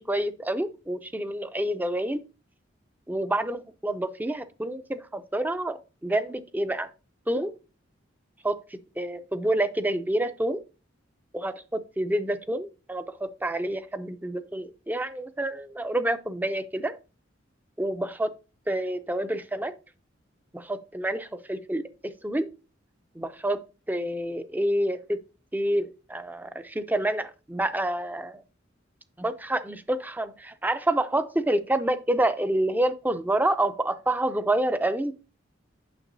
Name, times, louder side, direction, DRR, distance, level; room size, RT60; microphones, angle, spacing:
voice 1, 0.1-2.2 3.1-6.9 7.3-7.5 8.4-8.6 9.0-10.6 11.3-16.9 17.8-18.3 18.7-19.7 20.5-21.8 22.2-22.5 23.2-23.6 23.9-25.2 25.5-28.4 29.2-35.1, right 1 dB, 10° right, 11 dB, 0.5 m, -28 dB
9.0 x 6.6 x 2.7 m, 0.32 s
head